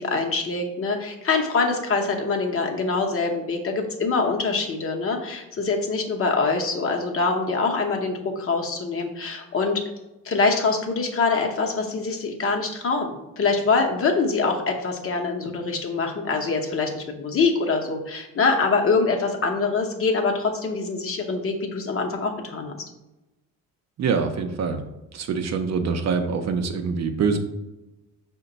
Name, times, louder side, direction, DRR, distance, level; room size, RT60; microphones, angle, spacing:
voice 1, 0.0-9.8 10.2-22.7, left 4 dB, 40° left, 2 dB, 0.8 m, -24 dB
voice 2, 24.0-24.8 25.1-27.4, right 5 dB, 45° right, 6 dB, 0.5 m, -24 dB
5.0 x 2.2 x 3.8 m, 0.99 s
cardioid pair, 95°, 36 cm